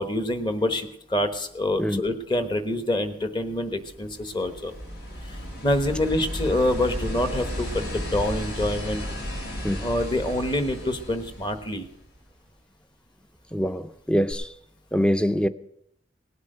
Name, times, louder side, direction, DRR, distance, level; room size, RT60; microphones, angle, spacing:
voice 1, 0.0-4.7 5.2-9.0 9.8-11.8, left 1 dB, 25° left, 1.1 m, -26 dB
sound 1, 3.7-12.2 14.3-14.4, equal, 65° left, 4.7 m, -34 dB
voice 2, 13.5-14.5 14.9-15.5, equal, 5° left, 0.5 m, -24 dB
18.5 x 8.2 x 6.7 m
head